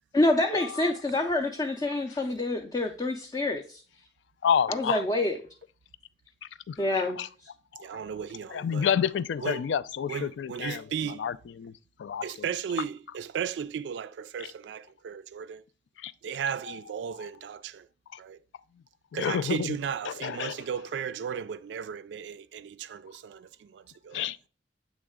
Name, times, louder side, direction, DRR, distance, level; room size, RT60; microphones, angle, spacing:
voice 1, 0.1-3.8 4.7-5.4 6.8-7.2, left 2 dB, 25° left, 0.4 m, -27 dB
voice 2, 4.4-5.0 8.6-10.8 11.2-11.3 11.6-11.7 12.0-12.2 16.0-16.1 19.2-19.7 20.1-20.5 24.1-24.5, left 8 dB, 90° left, 0.3 m, -28 dB
voice 3, 7.8-8.9 9.4-9.7 10.1-11.2 12.2-15.6 16.2-17.9 18.2-18.4 19.1-24.2, right 7 dB, 75° right, 0.3 m, -35 dB
8.7 x 3.1 x 3.5 m
head